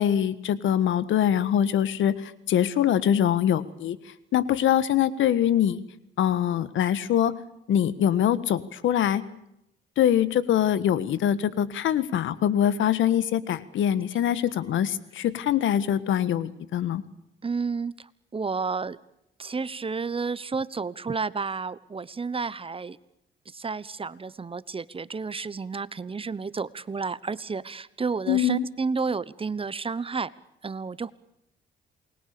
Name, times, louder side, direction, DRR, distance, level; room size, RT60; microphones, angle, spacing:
voice 1, 0.0-4.0 4.3-5.8 6.2-7.3 7.7-9.2 10.0-17.0 28.3-28.6, left 10 dB, 75° left, 16 dB, 1.6 m, -23 dB
voice 2, 17.4-19.0 19.4-23.0 23.5-30.3 30.6-31.1, right 4 dB, 25° right, 18 dB, 1.1 m, -31 dB
28.5 x 21.5 x 6.9 m, 0.80 s
cardioid pair, 90°, 20 cm